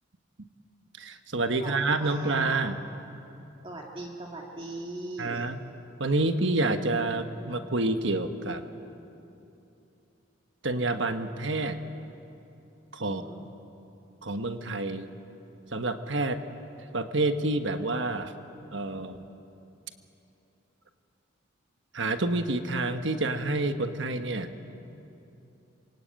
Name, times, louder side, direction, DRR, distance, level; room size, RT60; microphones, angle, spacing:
voice 1, 1.0-2.8 5.2-5.6 6.0-8.6 10.6-11.8 12.9-13.2 14.2-15.1 15.7-16.4 16.9-18.3 18.7-19.2 21.9-24.6, right 2 dB, 65° right, 8 dB, 1.4 m, -28 dB
voice 2, 1.5-2.7 3.6-5.5 13.0-13.4, right 1 dB, 25° right, -1 dB, 2.0 m, -40 dB
26.0 x 23.5 x 8.9 m, 2.9 s
head